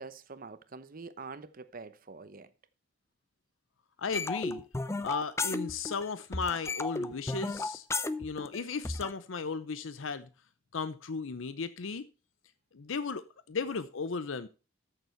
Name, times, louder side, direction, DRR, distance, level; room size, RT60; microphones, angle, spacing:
voice 1, 0.0-2.5, right 4 dB, 45° right, 0.9 m, -45 dB
voice 2, 4.0-4.6 5.0-7.9 8.2-10.3 10.7-12.1 12.7-13.2 13.5-14.5, left 5 dB, 75° left, 0.6 m, -35 dB
sound 1, 4.1-6.1 6.3-9.1, left 3 dB, 15° left, 0.6 m, -34 dB
13.5 x 6.9 x 4.5 m
head